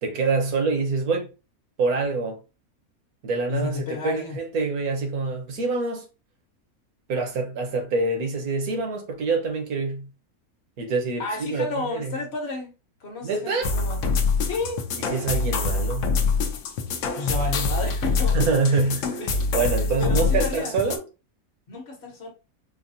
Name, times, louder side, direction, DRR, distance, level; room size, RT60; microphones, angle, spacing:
voice 1, 0.0-1.3 1.8-2.4 3.2-6.1 7.1-10.1 10.8-12.2 13.2-13.7 15.0-16.1 18.3-19.1 19.5-21.0, right 3 dB, 80° right, 1.5 m, -25 dB
voice 2, 3.5-4.4 11.2-12.7 13.0-14.0 14.5-14.8 17.1-19.7 20.0-20.8 21.7-22.3, left 3 dB, 50° left, 1.3 m, -32 dB
sound 1, 13.6-21.0, left 4 dB, 65° left, 1.0 m, -25 dB
4.8 x 2.2 x 2.7 m
omnidirectional pair, 1.5 m